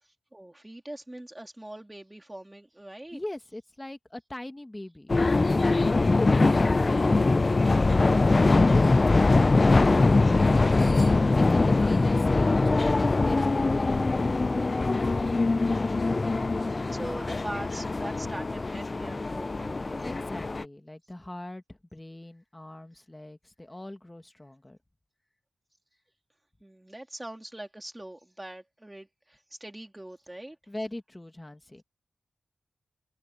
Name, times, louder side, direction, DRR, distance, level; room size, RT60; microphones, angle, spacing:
voice 1, 0.0-3.2 7.8-9.9 10.2-11.3 16.4-20.0 26.6-30.6, right 1 dB, 10° right, 3.4 m, -43 dB
voice 2, 3.1-6.6 11.3-14.8 20.0-24.8 30.7-31.8, left 1 dB, 15° left, 1.8 m, -41 dB
sound 1, 5.1-20.6, left 3 dB, 30° left, 0.3 m, -23 dB
open air
wide cardioid pair, 130°, 0 cm